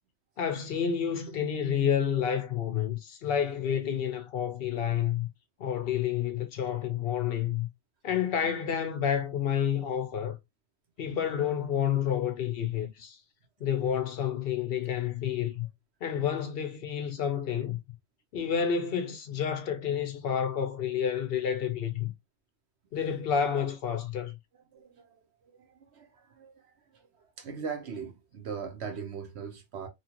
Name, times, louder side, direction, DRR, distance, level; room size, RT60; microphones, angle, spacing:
voice 1, 0.4-5.3 5.6-7.7 8.0-10.4 11.0-13.2 13.6-15.7 16.0-17.8 18.3-22.1 22.9-24.3, left 8 dB, 65° left, 0.7 m, -29 dB
voice 2, 24.5-29.9, right 6 dB, 70° right, 1.0 m, -41 dB
3.0 x 2.4 x 2.9 m
omnidirectional pair, 1.2 m